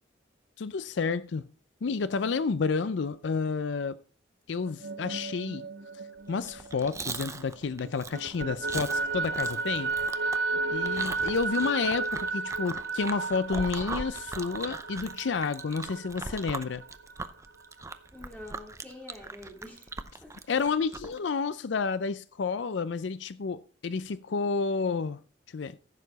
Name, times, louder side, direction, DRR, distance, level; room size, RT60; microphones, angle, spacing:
voice 1, 0.6-1.5 1.8-4.0 4.5-5.7 6.3-9.9 10.7-16.8 20.5-25.2 25.5-25.8, left 5 dB, 75° left, 0.5 m, -30 dB
sound 1, 4.7-7.5 7.8-17.3, right 3 dB, 70° right, 0.6 m, -33 dB
Chewing mastication, 6.4-21.2, right 3 dB, 15° right, 0.6 m, -40 dB
voice 2, 10.5-11.1 18.1-19.9 20.2-20.3, left 1 dB, 10° left, 3.5 m, -47 dB
15.0 x 6.8 x 4.1 m
head